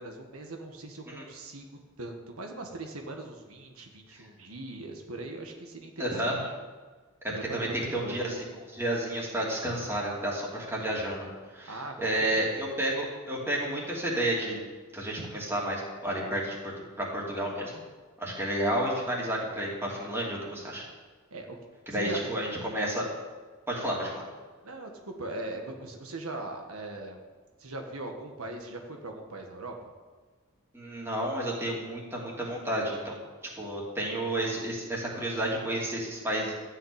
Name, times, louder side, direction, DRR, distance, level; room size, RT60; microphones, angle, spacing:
voice 1, 0.0-1.7 2.0-6.5 7.3-8.2 11.7-12.1 12.4-12.5 21.3-21.6 21.9-22.3 24.6-27.2 27.6-29.9, right 2 dB, 85° right, 3 dB, 1.5 m, -40 dB
voice 2, 6.0-6.4 7.2-14.6 14.9-17.8 18.2-20.8 21.9-23.0 23.7-24.2 30.7-33.2 33.5-36.5, right 1 dB, 10° right, -4 dB, 2.8 m, -31 dB
14.0 x 5.7 x 8.8 m, 1.4 s
head